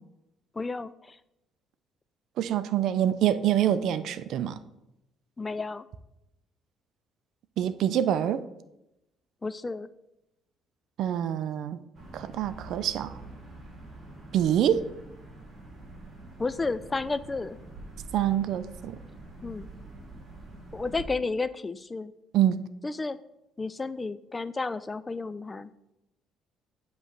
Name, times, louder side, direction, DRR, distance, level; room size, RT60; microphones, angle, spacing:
voice 1, 0.5-1.2 5.4-5.9 9.4-9.9 16.4-17.6 19.4-19.7 20.7-22.1 22.8-23.2 23.6-25.7, left 3 dB, 25° left, 14 dB, 0.4 m, -32 dB
voice 2, 2.4-4.6 7.6-8.4 11.0-11.8 12.1-13.1 14.3-14.8 18.1-19.0 22.3-22.6, right 10 dB, 70° right, 13 dB, 0.4 m, -25 dB
sound 1, 11.9-21.0, right 2 dB, 45° right, 2.3 m, -46 dB
7.8 x 3.1 x 6.0 m, 0.89 s
cardioid pair, 85°, 0 cm